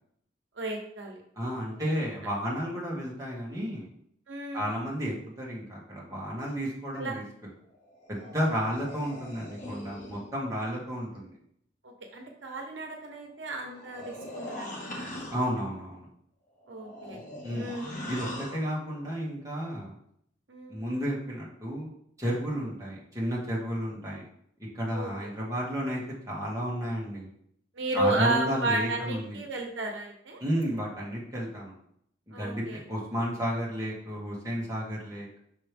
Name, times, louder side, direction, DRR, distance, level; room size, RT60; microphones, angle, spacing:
voice 1, 0.6-1.2 4.3-4.7 7.0-7.2 11.8-15.1 16.7-17.2 17.5-17.9 20.5-20.9 24.9-25.1 27.8-30.4 32.3-32.8, right 2 dB, 90° right, 2 dB, 1.1 m, -33 dB
voice 2, 1.3-3.9 4.5-7.2 8.1-11.3 15.3-16.1 17.4-17.7 18.1-19.9 20.7-21.9 22.2-24.3 24.7-27.3 27.9-29.4 30.4-31.7 32.3-35.4, equal, 20° right, -5 dB, 1.7 m, -32 dB
sound 1, 7.7-10.3 13.4-15.6 16.6-18.7, left 1 dB, 45° left, 1.3 m, -41 dB
5.8 x 4.6 x 3.5 m, 0.70 s
head